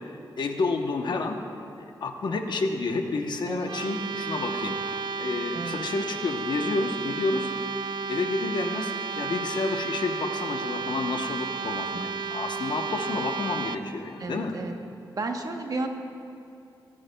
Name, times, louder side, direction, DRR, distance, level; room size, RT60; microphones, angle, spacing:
voice 1, 0.0-1.4 1.8-4.8 5.2-7.5 8.1-14.5, left 3 dB, 65° left, 4 dB, 0.8 m, -30 dB
sound 1, 3.7-13.8, right 5 dB, 70° right, 0.4 m, -32 dB
voice 2, 14.2-14.7 15.1-15.9, right 3 dB, 50° right, 4 dB, 0.9 m, -32 dB
18.0 x 9.6 x 2.2 m, 2.6 s
wide cardioid pair, 95°, 8 cm